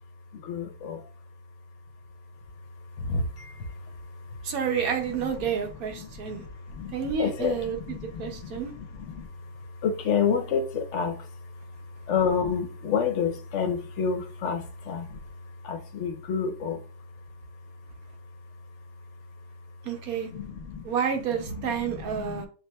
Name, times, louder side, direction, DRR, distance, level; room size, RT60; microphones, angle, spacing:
voice 1, 0.3-1.0 2.7-4.5 5.0-16.8 20.3-20.9 21.3-22.5, left 6 dB, 65° left, 0.9 m, -31 dB
voice 2, 4.4-6.4 6.9-8.7 19.8-20.3 20.8-22.5, right 7 dB, 85° right, 1.3 m, -30 dB
7.2 x 2.8 x 2.2 m
omnidirectional pair, 1.5 m